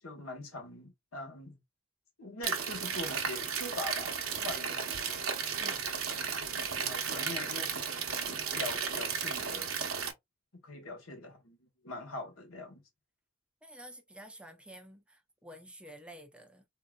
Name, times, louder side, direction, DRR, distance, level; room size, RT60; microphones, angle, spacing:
voice 1, 0.0-1.6 2.2-5.3 6.0-9.7 10.6-12.8, left 2 dB, 85° left, 1.2 m, -43 dB
sound 1, 2.4-10.1, right 6 dB, 80° right, 0.8 m, -34 dB
voice 2, 5.6-5.9 13.6-16.6, right 1 dB, 5° right, 0.5 m, -50 dB
3.8 x 2.6 x 2.2 m
head